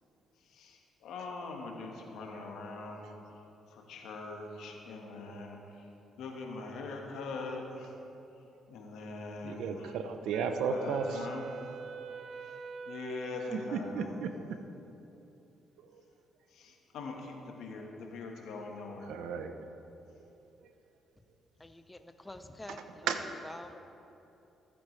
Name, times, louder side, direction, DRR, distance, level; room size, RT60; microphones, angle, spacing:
voice 1, 0.4-3.0 3.7-5.9 6.2-7.9 8.7-9.9 10.7-11.4 12.4-12.6 12.8-14.1 16.5-19.1, left 3 dB, 80° left, 1 dB, 1.4 m, -42 dB
voice 2, 9.4-11.3 12.1-12.2 13.5-14.3 15.8-16.0 19.0-19.5 20.2-20.3 20.6-20.7 22.7-23.3, right 6 dB, 85° right, 7 dB, 0.7 m, -35 dB
Wind instrument woodwind instrument, 10.3-14.6, right 5 dB, 55° right, 0.4 m, -45 dB
voice 3, 21.6-23.1 23.5-23.8, left 1 dB, 15° left, 8 dB, 0.6 m, -47 dB
15.0 x 8.6 x 3.3 m, 3.0 s
cardioid pair, 90°, 0 cm